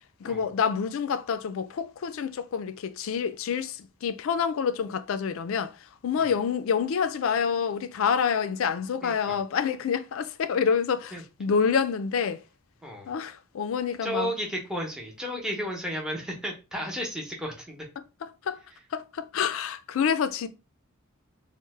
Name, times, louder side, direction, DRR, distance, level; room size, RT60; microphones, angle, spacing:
voice 1, 0.2-5.7 6.0-12.4 13.1-14.3 18.5-18.6 18.9-20.5, left 6 dB, 70° left, 0.4 m, -27 dB
voice 2, 9.0-9.4 11.1-11.2 12.8-13.1 14.0-17.9, equal, 5° right, 0.7 m, -33 dB
3.1 x 2.1 x 3.2 m
head